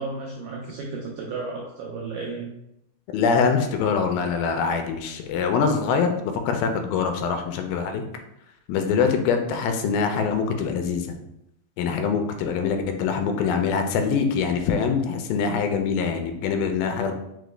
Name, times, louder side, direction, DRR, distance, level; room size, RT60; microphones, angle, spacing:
voice 1, 0.0-2.5, right 3 dB, 85° right, -2 dB, 1.8 m, -33 dB
voice 2, 3.1-6.1 6.5-8.0 8.7-11.1 11.8-17.1, left 6 dB, 85° left, 5 dB, 2.3 m, -24 dB
5.8 x 2.1 x 3.2 m, 0.81 s
omnidirectional pair, 4.2 m